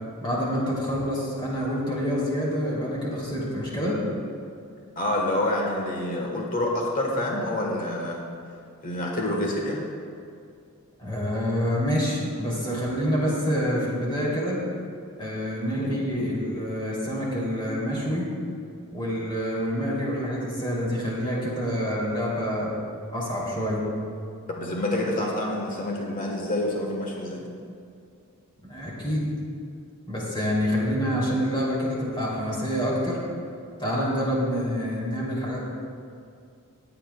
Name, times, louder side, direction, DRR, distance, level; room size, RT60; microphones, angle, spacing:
voice 1, 0.2-4.0 11.0-14.6 15.2-18.3 18.9-22.7 23.1-23.8 28.6-29.3 30.1-33.2 33.8-35.6, equal, 20° left, -5 dB, 2.9 m, -27 dB
voice 2, 5.0-8.2 8.8-9.8 15.8-15.9 24.5-27.4, left 1 dB, 40° left, -1 dB, 1.3 m, -27 dB
21.5 x 8.5 x 2.3 m, 2.4 s
head